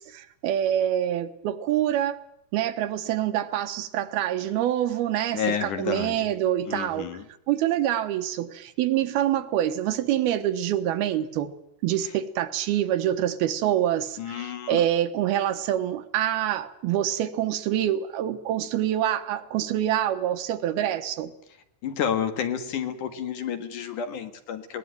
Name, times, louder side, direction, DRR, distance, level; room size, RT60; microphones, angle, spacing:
voice 1, 0.0-2.2 2.5-5.4 5.8-7.1 7.5-11.5 11.8-14.2 14.7-21.3, right 11 dB, 90° right, 3.2 m, -26 dB
voice 2, 5.3-6.3 6.7-7.3 12.0-12.2 14.2-14.9 21.5-24.8, left 8 dB, 60° left, 3.0 m, -31 dB
20.0 x 18.5 x 9.3 m
omnidirectional pair, 4.4 m